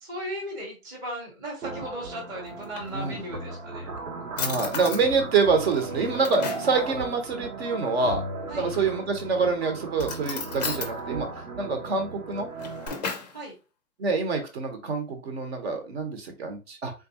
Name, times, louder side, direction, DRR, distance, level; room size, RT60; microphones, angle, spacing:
voice 1, 0.0-3.9 8.5-8.7 13.3-13.5, right 1 dB, 10° right, -5 dB, 0.7 m, -36 dB
sound 1, 1.6-12.9, right 3 dB, 80° right, 1.0 m, -36 dB
Drawer open or close, 2.5-3.4 4.0-4.1 4.4-5.0 5.7-6.8 8.6-9.2 9.9-10.9 12.3-13.4, left 5 dB, 30° left, 0.5 m, -35 dB
voice 2, 4.4-8.2 8.5-11.3 11.6-12.5 14.0-16.9, right 4 dB, 45° right, 5 dB, 0.9 m, -26 dB
3.6 x 2.6 x 2.7 m, 0.30 s
figure-of-eight pair, 130°, 44 cm